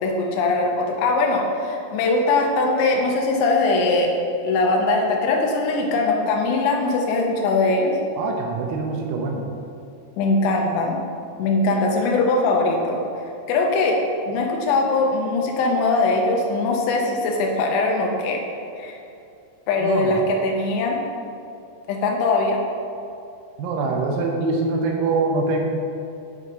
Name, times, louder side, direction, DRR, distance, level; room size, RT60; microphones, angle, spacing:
voice 1, 0.0-4.1 4.4-7.9 10.2-11.0 11.4-13.0 13.5-14.0 14.3-18.4 18.8-19.0 19.7-21.0 21.9-22.6, left 3 dB, 85° left, 0 dB, 2.9 m, -21 dB
voice 2, 8.2-9.5 19.8-20.2 23.6-25.6, right 3 dB, 85° right, 1 dB, 2.1 m, -24 dB
9.3 x 5.2 x 2.7 m, 2.6 s
omnidirectional pair, 4.9 m